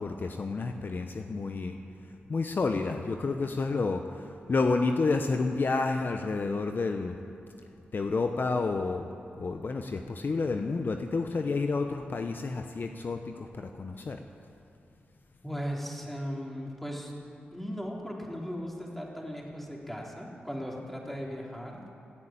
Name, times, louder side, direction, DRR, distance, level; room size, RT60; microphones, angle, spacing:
voice 1, 0.0-1.7 2.3-7.2 7.9-9.1 9.4-14.2, left 3 dB, 50° left, 5 dB, 0.9 m, -30 dB
voice 2, 15.4-17.1 17.5-21.8, equal, 5° left, -2 dB, 3.5 m, -37 dB
17.0 x 9.1 x 8.8 m, 2.8 s
cardioid pair, 55°, 4 cm